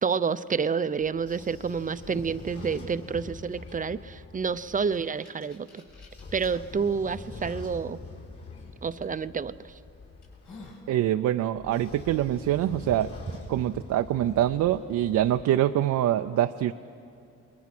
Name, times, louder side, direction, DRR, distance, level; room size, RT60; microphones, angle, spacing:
voice 1, 0.0-5.8 6.3-8.0 8.8-9.5, right 5 dB, 25° right, 13 dB, 0.6 m, -29 dB
Train / Sliding door, 1.0-5.0 5.9-10.7 11.5-15.4, left 3 dB, 50° left, 5.2 m, -44 dB
sound 1, 4.5-6.5 7.2-7.3 9.0-9.2 9.8-9.9 10.2-10.9, left 3 dB, 75° left, 6.5 m, -50 dB
voice 2, 10.9-13.1 13.5-16.7, right 12 dB, 70° right, 7 dB, 0.6 m, -25 dB
28.5 x 21.5 x 6.1 m, 2.7 s
cardioid pair, 90°, 30 cm